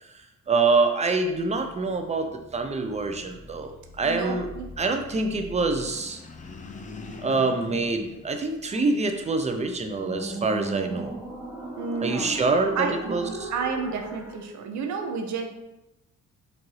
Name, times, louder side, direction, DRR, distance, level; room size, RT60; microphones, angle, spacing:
voice 1, 0.5-4.5 4.8-6.2 7.2-11.2 12.0-13.5, right 3 dB, 20° right, 5 dB, 0.5 m, -25 dB
sound 1, 1.2-14.5, right 1 dB, 5° right, 0.9 m, -40 dB
voice 2, 4.0-4.7 11.8-12.4 12.7-15.6, right 5 dB, 70° right, 5 dB, 0.7 m, -31 dB
sound 2, 5.5-9.1, left 4 dB, 25° left, 0.5 m, -43 dB
4.6 x 2.6 x 3.1 m, 0.94 s
cardioid pair, 90°, 30 cm